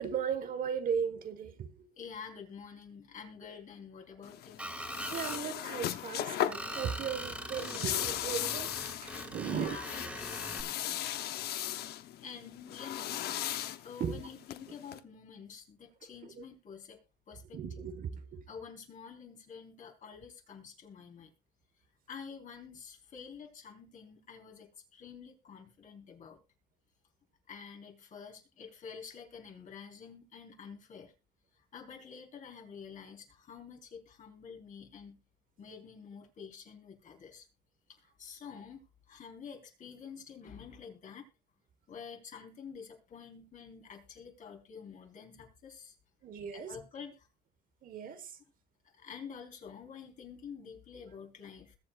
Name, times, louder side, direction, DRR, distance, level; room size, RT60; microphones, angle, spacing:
voice 1, 0.0-1.9 5.1-8.7 9.0-9.8 14.0-14.2 16.2-16.4 17.5-18.4 46.2-46.7 47.8-48.3, right 7 dB, 55° right, 1.5 m, -36 dB
voice 2, 2.0-4.6 9.4-11.0 12.2-13.2 13.8-17.0 17.3-17.6 18.5-21.3 22.1-26.4 27.5-31.1 31.7-35.2 35.6-37.5 38.2-38.8 39.1-41.3 41.9-45.9 46.5-47.3 49.0-51.8, left 6 dB, 50° left, 4.0 m, -48 dB
sound 1, 4.2-15.0, left 12 dB, 70° left, 0.9 m, -38 dB
Screech, 4.6-5.4 6.5-10.6, right 1 dB, 5° right, 2.7 m, -42 dB
21.5 x 7.7 x 2.5 m
cardioid pair, 110°, 17 cm